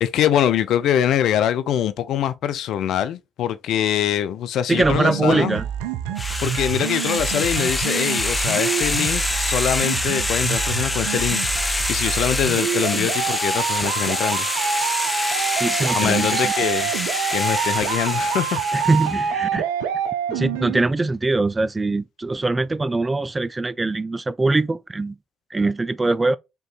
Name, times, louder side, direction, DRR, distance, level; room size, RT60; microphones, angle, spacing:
voice 1, 0.0-5.6 6.4-14.5 15.9-18.6, left 10 dB, 70° left, 0.4 m, -23 dB
voice 2, 4.7-5.6 15.6-16.5 18.7-19.6 20.3-25.2 25.5-26.4, right 3 dB, 25° right, 0.4 m, -22 dB
sound 1, 4.8-20.8, right 8 dB, 80° right, 0.5 m, -27 dB
sound 2, 6.2-19.2, left 2 dB, 20° left, 0.9 m, -26 dB
4.6 x 3.7 x 2.4 m
hypercardioid pair, 50°, 0 cm